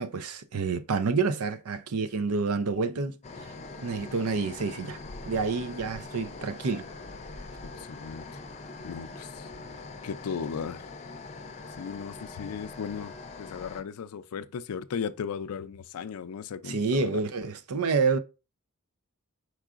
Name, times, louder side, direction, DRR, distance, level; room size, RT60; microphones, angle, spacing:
voice 1, 0.0-3.2 3.8-6.9 16.6-18.2, right 4 dB, 85° right, 0.5 m, -28 dB
sound 1, 3.2-13.8, left 3 dB, 30° left, 0.5 m, -43 dB
voice 2, 7.7-8.4 8.8-9.5 10.0-10.8 11.8-17.2, left 6 dB, 90° left, 0.4 m, -36 dB
4.8 x 4.5 x 2.4 m
head